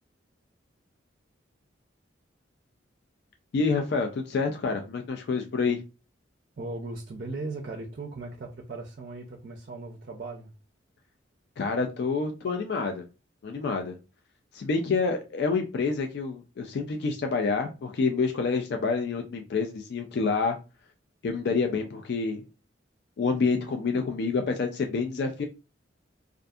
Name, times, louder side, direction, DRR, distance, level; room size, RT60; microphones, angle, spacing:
voice 1, 3.5-5.8 11.6-13.1 13.4-14.0 14.5-20.6 21.2-22.4 23.2-25.5, left 4 dB, 55° left, 0.3 m, -28 dB
voice 2, 6.6-10.5, right 2 dB, 50° right, 0.4 m, -38 dB
2.6 x 2.4 x 2.3 m
head